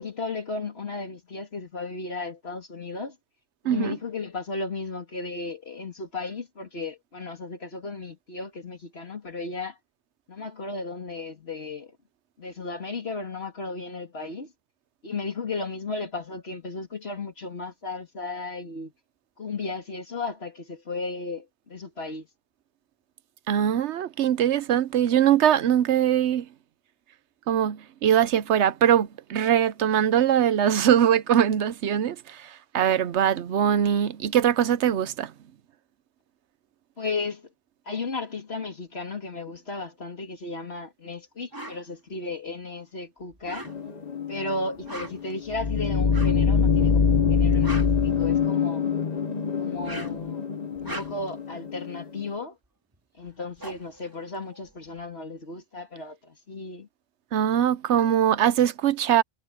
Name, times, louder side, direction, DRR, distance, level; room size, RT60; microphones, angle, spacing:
voice 1, 0.0-3.2 3.6-9.8 10.3-11.9 12.4-14.5 15.0-18.9 19.4-22.3 37.0-37.5 37.9-43.7 44.3-48.8 49.6-50.4 50.8-52.6 53.2-56.9, left 3 dB, 65° left, 2.8 m, -34 dB
voice 2, 23.5-26.5 27.5-35.3 57.3-59.2, right 10 dB, 80° right, 1.0 m, -22 dB
sound 1, 41.5-41.8 43.3-44.0 44.7-45.3 46.1-46.5 47.4-48.6 49.7-50.3 50.7-51.4 52.9-53.0 53.3-55.0, right 1 dB, 20° right, 2.7 m, -40 dB
sound 2, 43.7-52.3, left 6 dB, 40° left, 1.0 m, -25 dB
omnidirectional pair, 1.1 m